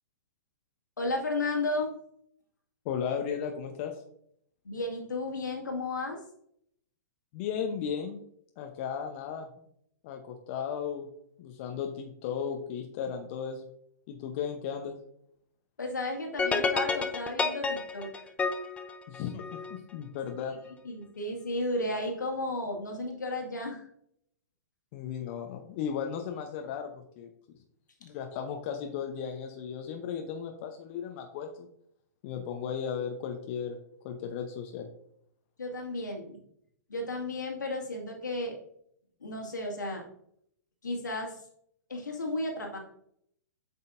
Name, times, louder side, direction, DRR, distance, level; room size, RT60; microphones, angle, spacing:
voice 1, 1.0-1.9 4.6-6.2 15.8-18.3 20.8-23.9 35.6-36.4 36.9-38.6 39.2-40.1 40.8-41.4 41.9-42.8, left 2 dB, 80° left, 1 dB, 1.9 m, -33 dB
voice 2, 2.8-4.0 7.3-8.2 8.6-9.5 10.0-11.1 11.4-13.7 14.1-14.9 19.1-20.6 24.9-27.3 28.0-31.7 32.2-33.8 34.0-34.9, left 7 dB, 40° left, 4 dB, 0.8 m, -35 dB
sound 1, 16.4-19.8, left 4 dB, 10° left, 0.6 m, -30 dB
7.9 x 5.4 x 2.6 m, 0.69 s
figure-of-eight pair, 115°, 10 cm